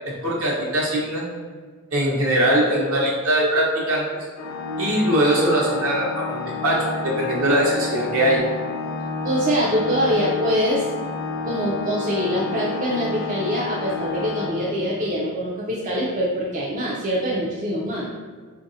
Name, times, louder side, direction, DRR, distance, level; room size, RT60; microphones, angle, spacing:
voice 1, 0.0-1.3 1.9-4.0 4.8-8.4, right 1 dB, 65° right, -3 dB, 0.9 m, -21 dB
Organ, 4.4-15.2, left 4 dB, 75° left, 0.3 m, -30 dB
voice 2, 9.2-10.9 11.4-18.1, equal, 35° right, -5 dB, 0.4 m, -24 dB
4.7 x 2.5 x 2.6 m, 1.5 s
head